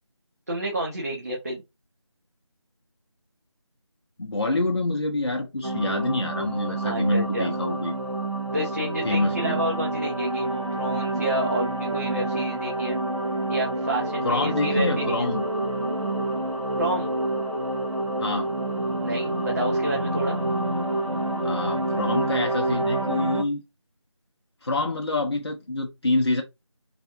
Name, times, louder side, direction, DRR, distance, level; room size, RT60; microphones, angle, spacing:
voice 1, 0.5-1.6 6.8-7.6 8.5-13.0 13.5-15.3 16.8-17.1 19.0-20.4, right 1 dB, 30° right, 0.8 m, -29 dB
voice 2, 4.2-7.9 9.0-9.6 14.2-15.4 18.2-18.5 21.4-23.6 24.6-26.4, left 2 dB, 55° left, 0.6 m, -26 dB
sound 1, 5.6-23.4, right 1 dB, 80° right, 1.0 m, -28 dB
3.3 x 2.4 x 2.5 m
figure-of-eight pair, 170°, 16 cm